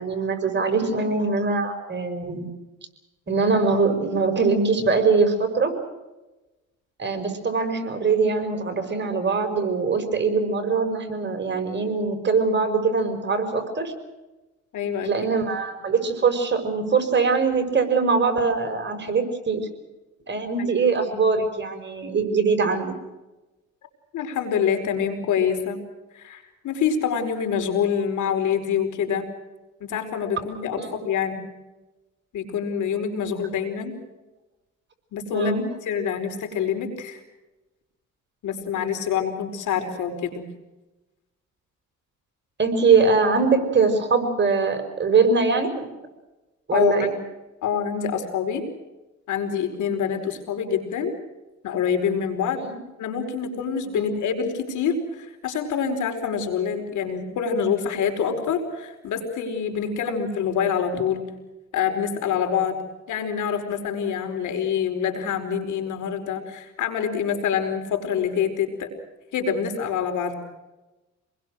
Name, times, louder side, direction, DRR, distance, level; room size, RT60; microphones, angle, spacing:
voice 1, 0.0-2.5 3.3-5.7 7.0-13.9 15.0-19.6 20.3-22.9 30.8-30.9 35.3-35.6 42.6-45.9 46.7-47.1 52.6-52.8, right 4 dB, 35° right, 7 dB, 5.4 m, -22 dB
voice 2, 14.7-15.1 20.6-20.7 24.1-25.8 26.1-29.2 29.8-31.4 32.3-33.9 35.1-35.5 35.9-37.2 38.4-40.4 46.7-46.9 47.6-48.6 49.3-51.1 51.6-52.6 53.0-61.2 61.7-62.8 63.1-68.9 69.3-70.3, left 7 dB, 80° left, 6 dB, 4.8 m, -26 dB
27.5 x 21.0 x 6.3 m, 1.1 s
cardioid pair, 90°, 30 cm